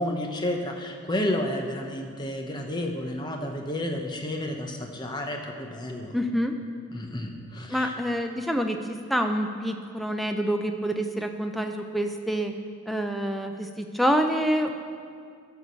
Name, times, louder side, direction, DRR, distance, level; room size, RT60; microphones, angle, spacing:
voice 1, 0.0-6.2 6.9-7.9, left 1 dB, 20° left, 2 dB, 0.8 m, -31 dB
voice 2, 6.1-6.6 7.7-12.5 12.9-14.8, equal, ahead, 5 dB, 0.5 m, -27 dB
13.0 x 4.7 x 6.8 m, 2.3 s
head